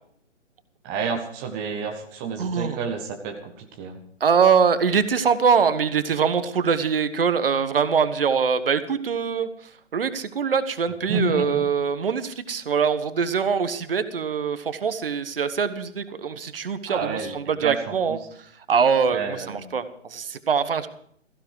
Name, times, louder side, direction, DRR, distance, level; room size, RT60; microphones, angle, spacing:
voice 1, 0.8-4.0 11.1-11.7 16.9-18.2 19.1-19.7, right 4 dB, 10° right, 2 dB, 0.8 m, -30 dB
voice 2, 2.4-2.8 4.2-20.9, right 6 dB, 50° right, 12 dB, 1.3 m, -23 dB
17.0 x 15.0 x 4.8 m, 0.63 s
figure-of-eight pair, 140°, 36 cm